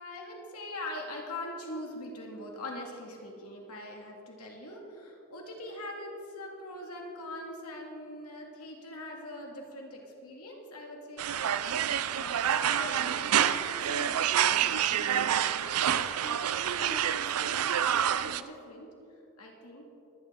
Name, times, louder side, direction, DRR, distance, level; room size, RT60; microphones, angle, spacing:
voice 1, 0.0-11.5 12.1-18.9 19.4-19.9, left 1 dB, 90° left, 0 dB, 2.2 m, -43 dB
sound 1, 11.2-18.4, right 9 dB, 80° right, 0.4 m, -28 dB
23.0 x 9.5 x 3.7 m, 2.6 s
head